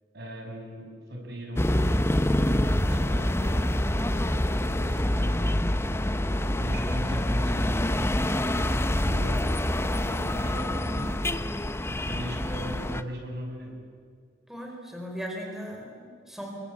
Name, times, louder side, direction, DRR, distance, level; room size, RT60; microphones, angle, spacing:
voice 1, 0.1-5.4 6.6-9.5 9.9-11.4 11.9-13.8, equal, 60° right, 1 dB, 7.1 m, -39 dB
sound 1, 1.6-13.0, left 1 dB, 15° left, 0.9 m, -26 dB
voice 2, 5.1-6.0 9.0-9.2 14.5-16.6, equal, ahead, 0 dB, 4.3 m, -39 dB
28.0 x 23.5 x 8.6 m, 2.1 s
head